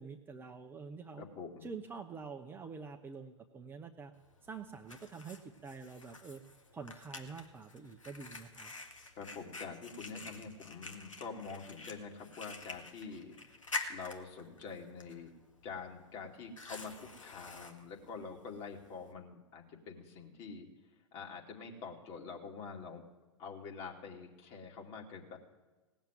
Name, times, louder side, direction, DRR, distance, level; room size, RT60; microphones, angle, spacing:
voice 1, 0.0-1.2 1.6-4.1 4.5-6.4 6.7-8.7, right 5 dB, 15° right, 4 dB, 0.7 m, -47 dB
voice 2, 1.2-1.7 9.2-13.4 13.9-15.3 15.6-20.7 21.1-23.0 23.4-25.4, left 5 dB, 35° left, 1 dB, 2.5 m, -46 dB
Fire, 4.2-19.1, left 3 dB, 80° left, 1.7 m, -48 dB
18.0 x 7.3 x 9.2 m, 1.2 s
figure-of-eight pair, 100°, 16 cm